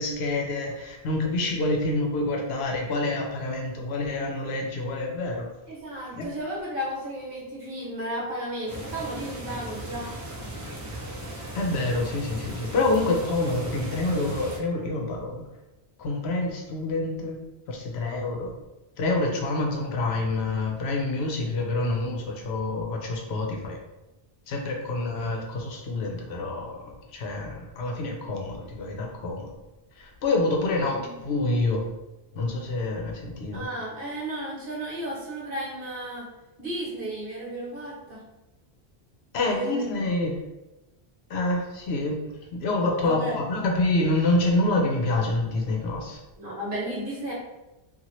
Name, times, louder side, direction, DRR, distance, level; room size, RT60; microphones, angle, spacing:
voice 1, 0.0-5.5 6.1-6.3 11.5-15.4 16.0-17.4 17.7-18.6 19.0-23.8 24.5-29.5 30.0-31.9 32.3-33.7 39.3-40.4 41.3-42.2 42.5-46.2, left 2 dB, 75° left, 1 dB, 0.9 m, -27 dB
voice 2, 5.7-10.1 31.0-31.1 33.5-36.3 36.6-38.2 39.4-39.8 43.0-43.4 46.4-47.3, right 1 dB, 55° right, -5 dB, 1.1 m, -33 dB
sound 1, 8.7-14.6, right 1 dB, 30° right, 0.3 m, -37 dB
2.7 x 2.4 x 3.0 m, 1.0 s
omnidirectional pair, 1.1 m